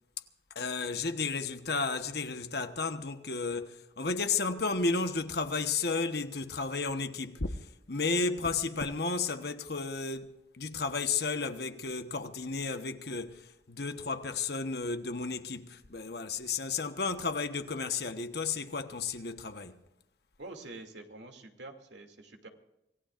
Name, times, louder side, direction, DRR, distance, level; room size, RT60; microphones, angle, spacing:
voice 1, 0.5-19.8, left 4 dB, 60° left, 1.2 m, -33 dB
voice 2, 20.4-22.5, right 2 dB, 80° right, 2.6 m, -46 dB
26.5 x 18.5 x 2.6 m
head